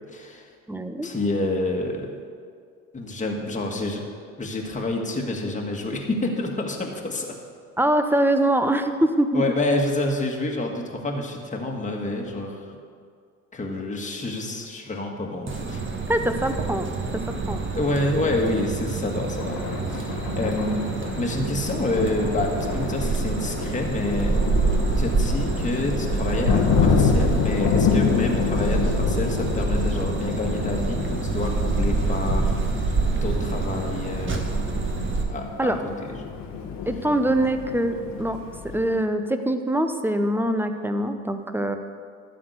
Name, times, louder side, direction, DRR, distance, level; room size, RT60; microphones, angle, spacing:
voice 1, 0.1-0.5 1.0-2.2 2.9-4.1 4.4-7.3 9.3-12.7 13.5-15.8 17.7-19.6 19.9-24.4 24.9-34.5 35.3-35.7 36.0-36.1, left 2 dB, 20° left, 0 dB, 1.7 m, -28 dB
voice 2, 0.7-1.1 7.8-9.4 16.1-16.9 17.5-17.6 35.6-35.8 36.9-38.4 38.7-41.8, right 1 dB, 5° right, 8 dB, 0.8 m, -23 dB
sound 1, 15.5-35.2, right 4 dB, 30° right, 1.5 m, -27 dB
Thunder, 19.3-39.0, left 6 dB, 50° left, 1.3 m, -28 dB
12.5 x 4.3 x 8.0 m, 2.2 s
hypercardioid pair, 70°, 42 cm